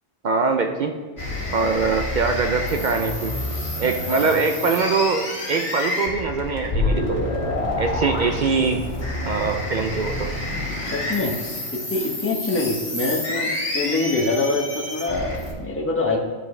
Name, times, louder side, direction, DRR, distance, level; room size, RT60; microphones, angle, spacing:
voice 1, 0.2-0.9 1.5-3.3 3.8-7.2 7.8-8.8 9.2-10.3, right 4 dB, 55° right, 5 dB, 0.5 m, -23 dB
sound 1, 1.2-15.5, left 1 dB, 60° left, 2.3 m, -28 dB
voice 2, 10.9-11.4 11.7-16.2, left 3 dB, 15° left, 0 dB, 0.8 m, -24 dB
12.0 x 4.9 x 3.2 m, 1.4 s
omnidirectional pair, 1.2 m